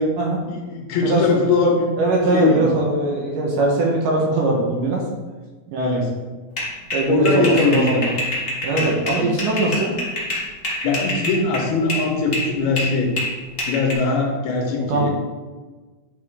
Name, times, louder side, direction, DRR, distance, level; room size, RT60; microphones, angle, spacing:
voice 1, 0.5-1.9 2.3-2.7 5.8-6.1 7.1-8.1 8.7-8.9 9.2-9.3 10.8-13.1 13.7-15.1, left 3 dB, 85° left, 1 dB, 3.1 m, -21 dB
voice 2, 2.0-5.1 5.7-6.1 6.9-8.1 8.6-10.0 14.8-15.1, right 2 dB, 65° right, -1 dB, 2.4 m, -21 dB
sound 1, 6.6-12.1 12.3-13.9, left 1 dB, 55° left, 0.6 m, -26 dB
10.0 x 5.1 x 3.7 m, 1.3 s
omnidirectional pair, 4.4 m